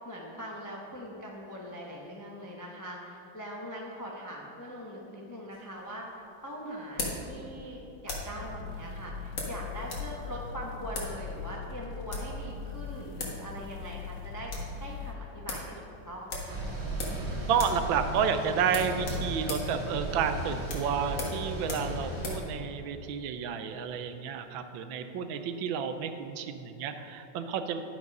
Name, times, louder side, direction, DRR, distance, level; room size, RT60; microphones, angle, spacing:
voice 1, 0.0-16.6, equal, 25° left, -2 dB, 0.4 m, -42 dB
sound 1, 5.5-8.4 9.4-10.1 10.4-10.5 10.9-11.2 11.9-12.4 12.9-13.0 13.2-13.4 13.7-13.8 14.1-14.7 15.1-15.2 15.5-15.7 16.3-17.3 17.5-17.9 18.1-18.3 18.7-22.5, left 2 dB, 60° left, 2.1 m, -38 dB
sound 2, 8.4-15.1, left 5 dB, 80° left, 1.3 m, -41 dB
sound 3, 16.5-22.4, right 1 dB, 45° right, 2.4 m, -36 dB
voice 2, 17.5-27.8, right 7 dB, 80° right, 8 dB, 1.3 m, -31 dB
11.0 x 5.3 x 5.2 m, 2.8 s
omnidirectional pair, 2.2 m